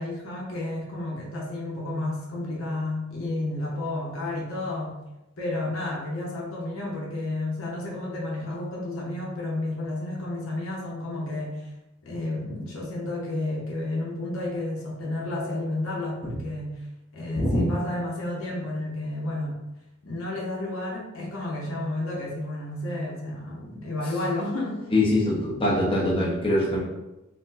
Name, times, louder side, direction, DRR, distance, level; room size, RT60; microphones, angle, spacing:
voice 1, 0.0-5.0 5.4-11.7 12.0-16.8 17.1-19.5 20.0-24.9, left 2 dB, 80° left, -3 dB, 0.8 m, -31 dB
voice 2, 24.9-26.8, left 1 dB, 25° left, -5 dB, 0.8 m, -23 dB
4.2 x 2.1 x 2.6 m, 0.97 s
head